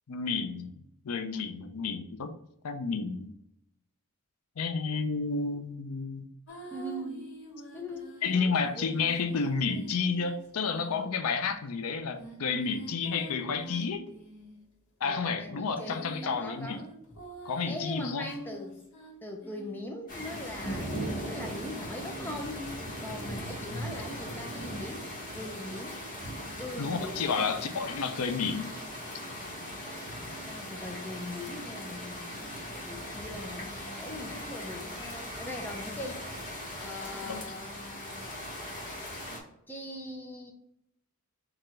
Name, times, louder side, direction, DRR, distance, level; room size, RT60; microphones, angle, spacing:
voice 1, 0.1-0.7 1.0-2.3 2.6-3.3 4.6-6.3 8.2-14.1 15.0-16.9 17.4-18.3 26.8-28.8 37.2-37.4, left 5 dB, 80° left, 8 dB, 0.5 m, -31 dB
sound 1, 6.5-11.4 12.1-14.6 15.5-20.1 22.0-23.3, right 1 dB, 65° left, 1.5 m, -47 dB
voice 2, 6.7-7.3 7.7-8.9 15.0-16.8 17.7-18.8 19.2-20.9 21.2-22.7 23.0-25.1 25.3-26.0 26.6-27.8 30.5-36.2 36.8-38.3 39.7-40.5, left 1 dB, 10° left, 2 dB, 0.6 m, -41 dB
sound 2, 20.1-39.4, equal, 40° left, 1.2 m, -39 dB
4.8 x 2.5 x 4.4 m, 0.75 s
head